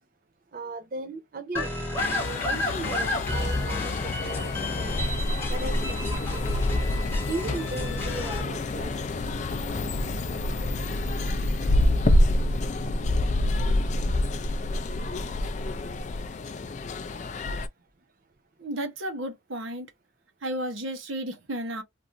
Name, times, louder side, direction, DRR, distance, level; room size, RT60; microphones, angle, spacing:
voice 1, 0.5-1.7 2.0-5.0 5.5-6.6 7.3-9.1, right 3 dB, 45° right, 0.4 m, -37 dB
sound 1, 1.5-8.4, left 1 dB, 10° left, 0.8 m, -32 dB
sound 2, 2.0-17.7, left 1 dB, 35° left, 0.3 m, -27 dB
voice 2, 18.6-19.9 20.4-21.8, right 1 dB, 80° right, 1.0 m, -33 dB
3.0 x 2.5 x 2.4 m
head